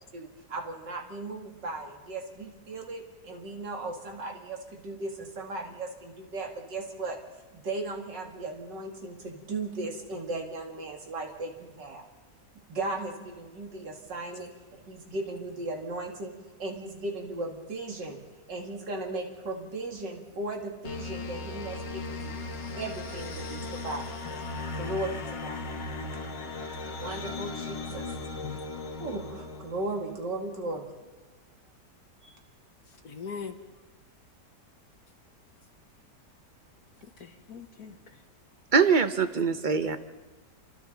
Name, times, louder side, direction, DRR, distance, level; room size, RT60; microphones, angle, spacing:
voice 1, 0.1-7.2 7.5-12.0 12.7-14.5 14.9-16.3 16.6-18.2 18.5-22.3 22.8-24.0 24.8-25.6 26.8-28.1 28.5-28.7 29.0-30.9 32.2-32.3, right 2 dB, 85° right, 2 dB, 2.9 m, -36 dB
sound 1, 20.8-30.3, left 3 dB, 85° left, 2.2 m, -37 dB
voice 2, 32.9-33.6 37.0-38.2, left 6 dB, 60° left, 5 dB, 1.7 m, -41 dB
voice 3, 38.7-40.0, right 5 dB, 40° right, 10 dB, 0.7 m, -23 dB
29.0 x 24.0 x 4.0 m, 1.3 s
omnidirectional pair, 1.8 m